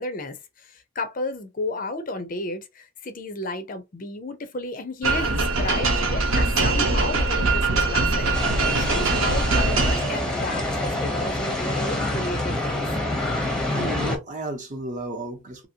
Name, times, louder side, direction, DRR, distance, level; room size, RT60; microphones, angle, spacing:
voice 1, 0.0-12.9, left 2 dB, 40° left, 0.5 m, -33 dB
sound 1, 5.0-10.4, right 3 dB, 75° right, 0.9 m, -22 dB
sound 2, 8.3-14.2, left 1 dB, 5° left, 0.7 m, -27 dB
voice 2, 13.7-15.7, right 2 dB, 35° right, 0.7 m, -32 dB
2.7 x 2.7 x 2.7 m
head